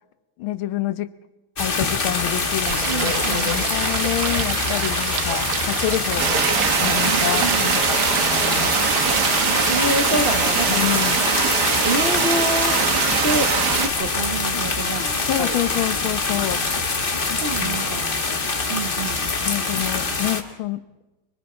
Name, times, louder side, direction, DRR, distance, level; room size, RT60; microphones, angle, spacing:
voice 1, 0.4-1.1 1.6-8.8 10.7-11.3 15.3-16.6 17.3-17.8 19.4-20.9, left 13 dB, 85° left, 13 dB, 1.7 m, -27 dB
sound 1, 1.6-20.4, left 3 dB, 30° left, 1.4 m, -25 dB
sound 2, 2.6-10.1, right 10 dB, 85° right, 1.7 m, -28 dB
voice 2, 2.9-3.6 7.0-7.8 9.1-10.8 11.8-12.8 13.2-15.6 17.4-18.3 18.7-19.3, right 2 dB, 35° right, 5 dB, 1.0 m, -28 dB
sound 3, 6.2-13.9, right 6 dB, 55° right, 1.9 m, -22 dB
26.0 x 23.5 x 4.4 m, 1.1 s
omnidirectional pair, 2.2 m